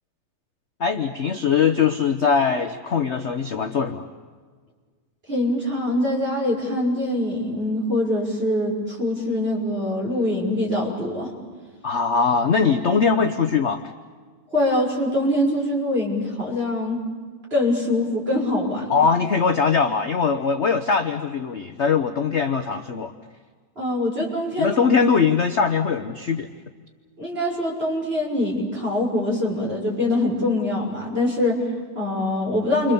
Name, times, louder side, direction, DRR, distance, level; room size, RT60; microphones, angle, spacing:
voice 1, 0.8-4.1 11.8-13.8 18.9-23.1 24.6-26.5, left 5 dB, 45° left, 6 dB, 1.1 m, -21 dB
voice 2, 5.3-11.3 14.5-17.0 17.5-19.0 23.8-24.7 27.2-32.9, left 1 dB, 30° right, -2 dB, 6.5 m, -24 dB
29.5 x 25.5 x 7.0 m, 1.5 s
omnidirectional pair, 2.1 m